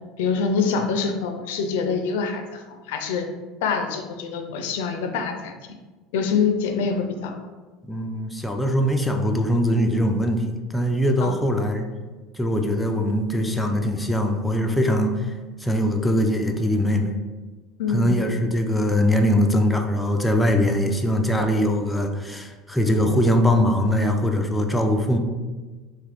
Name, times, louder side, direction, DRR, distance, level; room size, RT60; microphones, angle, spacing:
voice 1, 0.2-3.3 3.6-5.5 6.1-7.4 11.2-11.3 17.8-18.2, left 5 dB, 85° left, 5 dB, 0.4 m, -25 dB
voice 2, 7.8-11.9 12.3-15.3 15.6-17.1 17.9-25.2, equal, 5° left, 3 dB, 0.3 m, -22 dB
2.9 x 2.4 x 3.4 m, 1.3 s
supercardioid pair, 125°, 0 cm